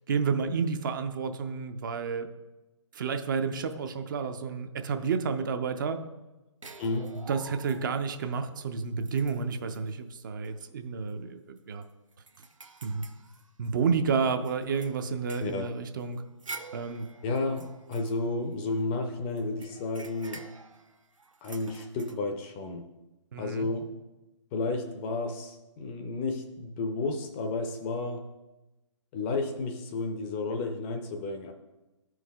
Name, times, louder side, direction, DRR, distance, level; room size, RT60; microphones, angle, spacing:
voice 1, 0.1-2.3 2.9-6.0 7.3-11.8 12.8-13.0 13.6-16.2 16.7-17.1 23.3-23.7, right 5 dB, 40° right, 8 dB, 0.5 m, -30 dB
sound 1, 6.6-8.1 8.6-8.7 9.0-9.9 10.4-10.6 11.0-11.1 11.6-14.0 14.4-18.9 19.4-22.1, right 3 dB, 90° right, 0.6 m, -48 dB
voice 2, 6.8-7.2 15.4-15.7 17.2-20.5 21.4-22.9 23.4-23.9 24.5-28.2 29.1-31.5, left 3 dB, 20° left, 5 dB, 0.5 m, -32 dB
14.0 x 4.7 x 2.3 m, 1.0 s
figure-of-eight pair, 135°, 16 cm